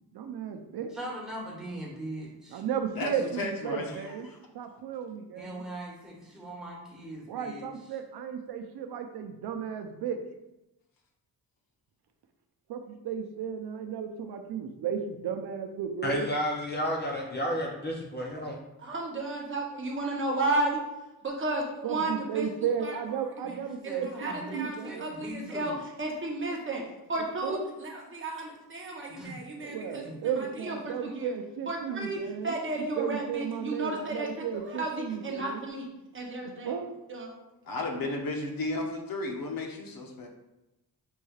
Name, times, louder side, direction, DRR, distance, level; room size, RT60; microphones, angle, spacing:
voice 1, 0.1-0.9 2.5-4.3 4.5-5.6 7.3-10.2 12.7-16.3 21.8-25.1 27.4-27.6 29.6-32.5 33.0-35.6 36.6-36.9, right 7 dB, 75° right, 6 dB, 0.5 m, -34 dB
voice 2, 0.9-2.6 5.3-7.6 23.4-25.8 29.2-29.4 30.0-30.2, right 1 dB, ahead, -5 dB, 1.1 m, -41 dB
voice 3, 3.0-4.4 37.7-40.3, left 2 dB, 65° left, 2 dB, 0.7 m, -34 dB
voice 4, 16.0-18.6, equal, 25° left, -1 dB, 0.5 m, -31 dB
voice 5, 18.8-20.8 21.2-22.5 22.8-23.0 23.4-23.6 23.8-25.7 26.0-26.8 27.1-31.3 31.7-35.9 36.1-36.8 37.1-37.3, right 2 dB, 30° right, -1 dB, 0.7 m, -33 dB
5.4 x 3.1 x 2.3 m, 0.96 s
wide cardioid pair, 155°, 38 cm